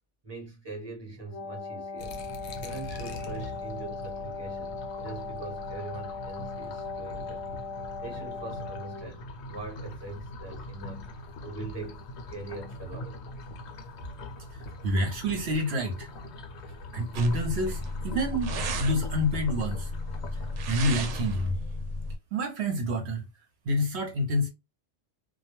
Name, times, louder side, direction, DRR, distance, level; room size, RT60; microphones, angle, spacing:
voice 1, 0.2-2.2 2.5-7.4 8.0-11.1 11.4-13.2, right 3 dB, 25° right, 0.8 m, -42 dB
Wind instrument woodwind instrument, 1.2-9.2, left 4 dB, 25° left, 0.3 m, -38 dB
sound 1, 2.0-20.8, left 1 dB, 65° left, 0.9 m, -42 dB
voice 2, 14.8-16.1 16.9-18.5 18.8-19.9 20.6-21.5 22.3-23.2 23.7-24.5, equal, 65° right, 0.9 m, -28 dB
sound 2, 17.1-22.2, left 1 dB, 90° right, 1.0 m, -33 dB
2.3 x 2.1 x 2.9 m
omnidirectional pair, 1.3 m